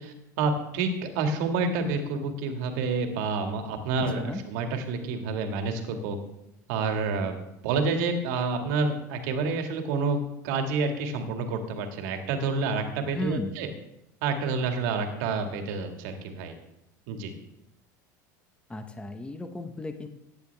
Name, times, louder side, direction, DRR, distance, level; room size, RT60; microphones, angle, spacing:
voice 1, 0.0-6.2 6.7-7.3 7.6-10.2 10.4-13.7 14.2-16.5 17.1-17.3, right 4 dB, 70° right, 5 dB, 2.0 m, -28 dB
voice 2, 4.0-4.4 13.1-13.6 18.7-20.1, left 1 dB, 10° left, 7 dB, 1.2 m, -34 dB
15.5 x 9.7 x 3.5 m, 0.86 s
hypercardioid pair, 90°, 10 cm